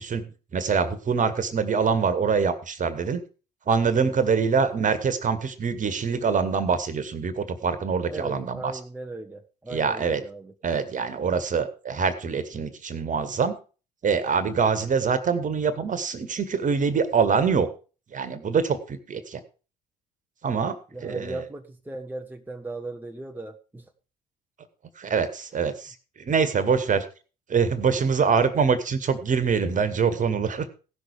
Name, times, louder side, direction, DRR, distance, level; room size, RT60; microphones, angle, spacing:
voice 1, 0.0-3.2 3.7-8.7 9.7-10.2 10.6-13.6 14.0-17.7 18.1-19.4 20.4-20.8 21.0-21.4 25.0-27.1 27.5-30.7, right 5 dB, 40° right, 12 dB, 1.8 m, -24 dB
voice 2, 8.1-10.5 20.9-23.9 29.5-29.7, right 2 dB, 10° right, 4 dB, 1.2 m, -37 dB
16.5 x 6.3 x 4.9 m, 0.35 s
hypercardioid pair, 55°, 21 cm